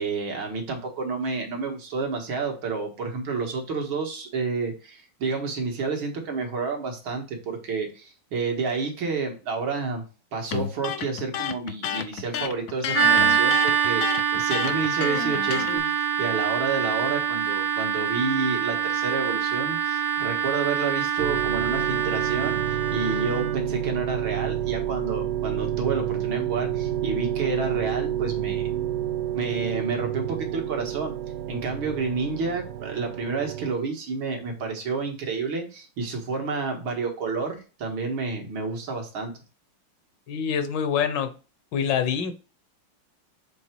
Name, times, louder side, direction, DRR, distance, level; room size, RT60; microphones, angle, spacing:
voice 1, 0.0-10.0 10.3-15.9 16.2-28.7 29.3-31.1 31.5-39.3, right 4 dB, 85° right, 2.4 m, -30 dB
Electric guitar, 10.5-15.8, left 9 dB, 85° left, 0.7 m, -30 dB
sound 1, 12.9-23.5, right 8 dB, 45° right, 0.4 m, -25 dB
sound 2, 21.2-33.7, right 11 dB, 70° right, 1.0 m, -29 dB
voice 2, 40.3-41.4 41.7-42.3, left 7 dB, 70° left, 1.4 m, -25 dB
7.1 x 3.4 x 4.5 m
omnidirectional pair, 2.2 m